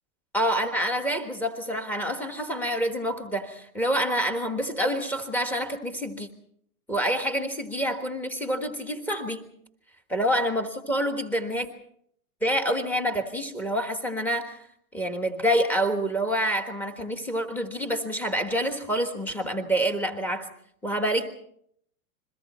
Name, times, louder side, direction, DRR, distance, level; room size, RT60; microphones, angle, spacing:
voice 1, 0.3-6.3 6.9-9.4 10.1-11.7 12.4-14.6 14.9-20.5 20.8-21.3, equal, 5° left, 5 dB, 1.4 m, -27 dB
30.0 x 22.5 x 4.3 m, 0.68 s
supercardioid pair, 170°, 44 cm